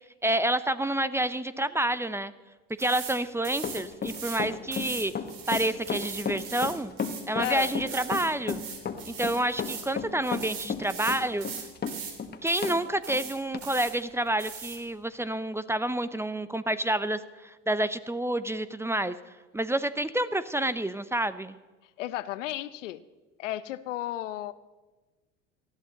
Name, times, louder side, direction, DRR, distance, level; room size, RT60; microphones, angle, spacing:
voice 1, 0.2-2.3 2.8-5.1 5.5-6.9 7.3-8.6 9.1-11.5 12.4-19.1 19.5-21.6, right 1 dB, 5° right, 14 dB, 0.6 m, -28 dB
sound 1, 2.8-3.2 3.4-4.4 4.7-9.9 10.2-12.2 12.5-12.8 13.0-13.9 14.4-14.8, right 6 dB, 70° right, 3.1 m, -40 dB
Run, 3.6-12.8 13.1-13.2 13.5-13.6, left 6 dB, 25° left, 1.5 m, -33 dB
voice 2, 7.4-7.7 22.0-23.0 23.4-24.5, left 14 dB, 80° left, 15 dB, 0.7 m, -33 dB
19.0 x 13.5 x 4.0 m, 1.2 s
hypercardioid pair, 75°, 36 cm